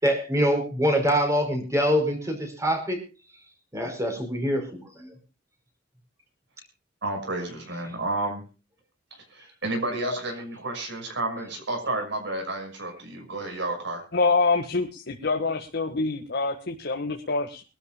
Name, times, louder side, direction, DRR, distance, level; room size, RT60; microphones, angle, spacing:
voice 1, 0.0-3.0 3.7-5.1, equal, 15° right, 4 dB, 5.1 m, -24 dB
voice 2, 7.0-8.4 9.6-14.0, right 2 dB, 65° right, 4 dB, 6.1 m, -31 dB
voice 3, 14.1-17.6, left 3 dB, 55° left, 2 dB, 1.8 m, -26 dB
24.5 x 12.5 x 2.3 m, 0.32 s
head